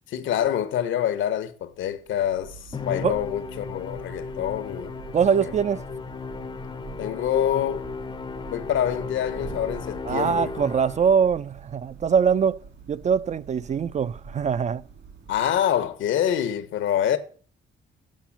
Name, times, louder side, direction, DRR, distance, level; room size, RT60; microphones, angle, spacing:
voice 1, 0.1-4.9 5.4-5.5 7.0-7.9 8.5-10.5 15.3-17.2, left 10 dB, 80° left, 1.0 m, -26 dB
Thunder / Rain, 1.8-16.1, right 5 dB, 65° right, 2.3 m, -45 dB
Musical instrument, 2.7-11.3, left 5 dB, 25° left, 0.6 m, -36 dB
voice 2, 5.1-5.8 10.0-12.6 12.9-14.8, right 7 dB, 35° right, 0.4 m, -22 dB
7.5 x 4.9 x 7.2 m
cardioid pair, 90°, 20 cm